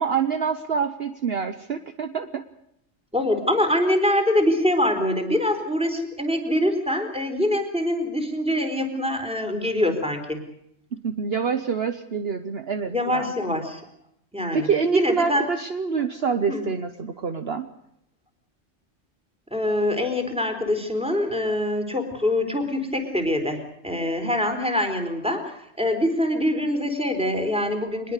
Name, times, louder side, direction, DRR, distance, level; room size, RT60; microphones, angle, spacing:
voice 1, 0.0-2.4 10.9-13.3 14.5-17.7, right 6 dB, 55° right, 8 dB, 1.2 m, -26 dB
voice 2, 3.1-10.4 12.9-13.8 14.3-15.5 16.5-16.6 19.5-28.1, left 1 dB, 5° right, 5 dB, 4.0 m, -24 dB
23.5 x 21.0 x 6.6 m, 0.76 s
omnidirectional pair, 1.3 m